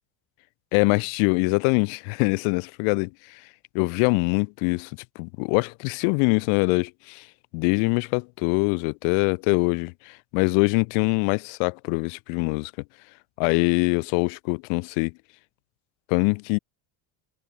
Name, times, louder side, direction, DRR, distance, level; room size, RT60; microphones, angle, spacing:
voice 1, 0.7-3.4 3.7-7.3 7.5-12.7 13.4-15.1 16.1-16.6, left 40 dB or more, 90° left, 1.1 m, -23 dB
cardioid pair, 110°, 49 cm